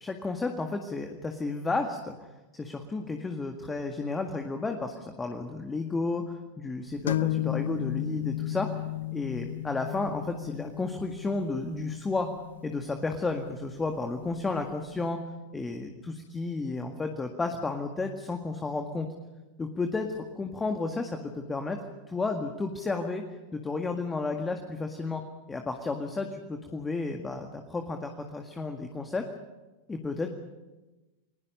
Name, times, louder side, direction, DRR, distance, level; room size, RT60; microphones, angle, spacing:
voice 1, 0.0-2.3 2.5-8.7 9.1-12.3 12.6-15.2 15.5-15.9 16.3-19.1 19.6-21.8 22.1-23.2 23.5-25.2 25.5-29.2 29.9-30.3, left 3 dB, 15° left, 5 dB, 1.9 m, -32 dB
sound 1, 7.1-14.6, left 15 dB, 65° left, 0.7 m, -34 dB
29.5 x 21.0 x 5.5 m, 1.1 s
figure-of-eight pair, 90°, 0 cm